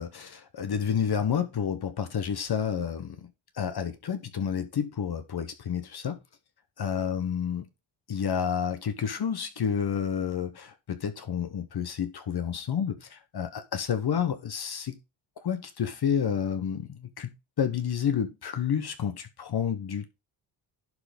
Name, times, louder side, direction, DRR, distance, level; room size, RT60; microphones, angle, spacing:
voice 1, 0.0-3.3 3.6-6.2 6.8-7.7 8.1-15.0 15.4-20.1, left 7 dB, 50° left, 1.3 m, -30 dB
11.0 x 3.9 x 5.3 m
cardioid pair, 90°, 49 cm